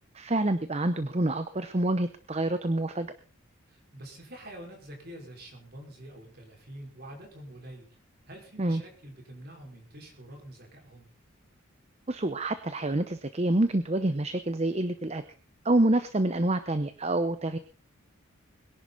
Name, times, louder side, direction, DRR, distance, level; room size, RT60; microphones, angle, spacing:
voice 1, 0.1-3.1 8.6-8.8 12.1-15.2 15.6-17.6, right 1 dB, 30° right, 11 dB, 0.7 m, -27 dB
voice 2, 3.7-8.0 8.3-11.1, right 1 dB, 45° right, 1 dB, 5.1 m, -46 dB
22.0 x 11.0 x 4.1 m, 0.38 s
head